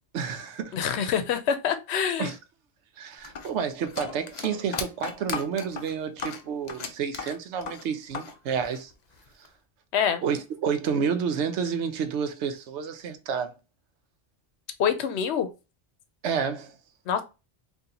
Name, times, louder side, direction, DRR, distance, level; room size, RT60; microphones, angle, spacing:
voice 1, 0.1-1.1 2.2-2.4 3.0-8.9 10.2-13.5 16.2-16.7, right 7 dB, 85° right, 0.9 m, -30 dB
voice 2, 0.7-2.3 9.9-10.2 14.8-15.5 17.1-17.2, left 8 dB, 75° left, 0.8 m, -25 dB
sound 1, 3.2-8.3 8.6-9.5, left 5 dB, 50° left, 0.5 m, -36 dB
2.8 x 2.6 x 3.8 m
omnidirectional pair, 1.1 m